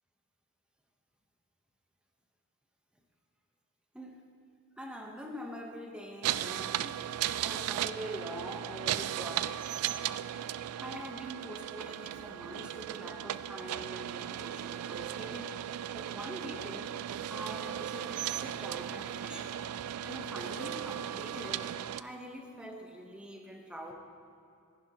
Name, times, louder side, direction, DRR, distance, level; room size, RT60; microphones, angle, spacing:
voice 1, 4.8-7.0 7.4-10.2 10.8-15.6 15.9-16.9 17.3-19.6 20.0-21.7 22.0-23.9, equal, 5° right, 2 dB, 0.9 m, -44 dB
sound 1, 6.2-22.0, right 11 dB, 80° right, 0.3 m, -36 dB
15.0 x 11.0 x 2.9 m, 2.6 s
head